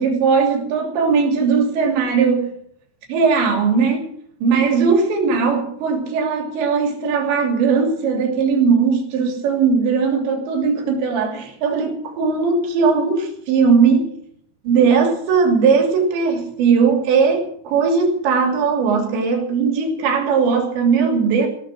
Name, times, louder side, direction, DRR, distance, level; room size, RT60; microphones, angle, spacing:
voice 1, 0.0-2.5 3.1-4.1 4.4-14.1 14.6-21.5, right 5 dB, 70° right, 4 dB, 5.1 m, -18 dB
16.5 x 13.0 x 6.2 m, 0.66 s
omnidirectional pair, 5.4 m